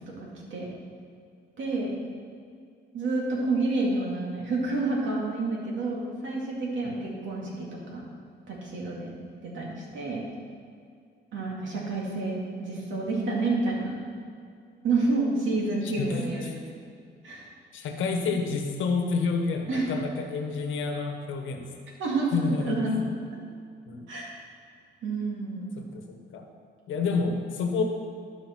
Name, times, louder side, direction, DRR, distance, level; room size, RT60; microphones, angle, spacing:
voice 1, 1.6-1.9 2.9-8.0 8.5-10.2 11.3-14.0 14.8-16.5 17.2-17.5 19.7-19.9 22.0-22.9 24.1-24.3 25.0-25.7, right 3 dB, 70° right, -3 dB, 2.4 m, -29 dB
voice 2, 15.8-16.5 17.7-21.7 22.3-23.0 23.9-24.1 25.8-26.5 26.9-27.8, left 4 dB, 80° left, 3 dB, 1.2 m, -29 dB
12.5 x 5.2 x 4.5 m, 2.3 s
cardioid pair, 90°, 20 cm